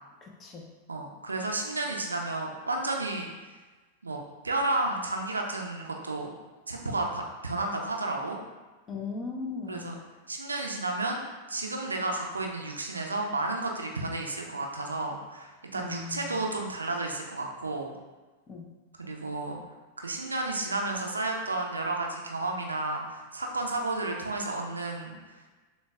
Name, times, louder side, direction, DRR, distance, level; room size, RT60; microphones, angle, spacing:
voice 1, 0.2-0.6 8.9-10.0 15.7-16.3 18.5-18.7, left 4 dB, 25° left, 0 dB, 0.7 m, -38 dB
voice 2, 0.9-3.5 4.0-4.2 4.4-6.3 6.7-8.4 9.7-10.0 10.3-17.9 19.0-19.6 20.0-25.4, right 2 dB, 80° right, 1 dB, 0.5 m, -32 dB
6.6 x 2.3 x 2.3 m, 1.3 s
figure-of-eight pair, 90°, 0 cm